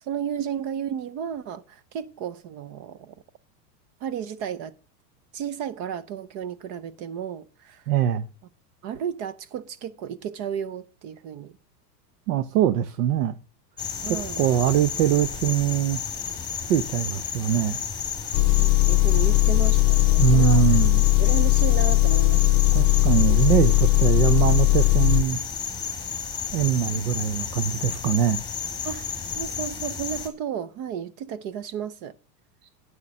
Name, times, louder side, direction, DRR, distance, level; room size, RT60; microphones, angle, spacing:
voice 1, 0.0-3.1 4.0-4.7 5.3-7.9 8.8-11.6 14.0-14.5 18.5-20.8 21.2-22.5 28.8-32.2, right 8 dB, 30° right, 0.5 m, -33 dB
voice 2, 7.9-8.2 12.3-13.4 14.1-16.0 16.7-17.8 20.2-21.0 22.7-25.4 26.5-28.4, right 10 dB, 70° right, 0.8 m, -22 dB
sound 1, 13.8-30.3, left 7 dB, 10° left, 2.4 m, -32 dB
Engine, 18.3-25.2, left 21 dB, 30° left, 0.4 m, -19 dB
8.8 x 6.8 x 6.1 m
supercardioid pair, 135°, 50 cm